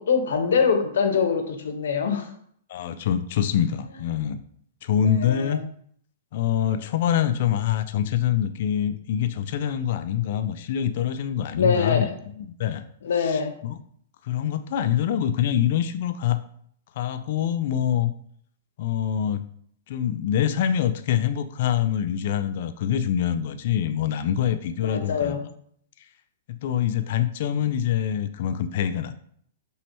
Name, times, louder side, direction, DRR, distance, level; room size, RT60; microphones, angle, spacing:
voice 1, 0.0-2.3 5.0-5.6 11.6-12.2 13.0-13.6 24.8-25.5, left 5 dB, 80° left, 7 dB, 0.8 m, -24 dB
voice 2, 2.7-4.4 4.8-5.6 6.3-12.1 12.6-12.8 13.2-13.7 14.2-16.4 17.0-18.1 18.8-19.5 19.9-25.4 26.5-29.2, left 10 dB, 45° left, 11 dB, 0.3 m, -25 dB
5.5 x 3.1 x 3.0 m, 0.65 s
hypercardioid pair, 165°, 0 cm